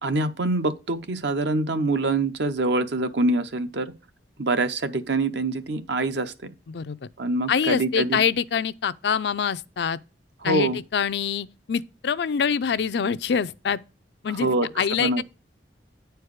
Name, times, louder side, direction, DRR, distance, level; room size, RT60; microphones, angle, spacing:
voice 1, 0.0-3.9 4.4-6.3 7.2-8.2 10.4-10.8 14.3-14.7 15.0-15.2, right 2 dB, 70° right, 0.9 m, -25 dB
voice 2, 7.5-10.0 10.4-13.8 14.2-15.2, left 6 dB, 65° left, 0.4 m, -25 dB
9.3 x 4.6 x 4.8 m
head